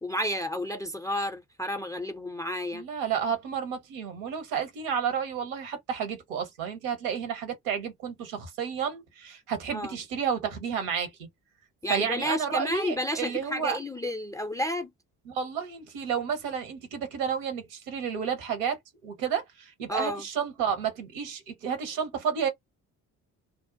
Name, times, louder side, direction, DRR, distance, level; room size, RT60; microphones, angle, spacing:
voice 1, 0.0-2.8 9.7-10.0 11.8-14.9 19.9-20.3, left 1 dB, 10° left, 0.4 m, -31 dB
voice 2, 2.7-11.3 11.9-13.8 15.3-22.5, right 7 dB, 65° right, 1.1 m, -31 dB
2.6 x 2.1 x 2.4 m
figure-of-eight pair, 45°, 47 cm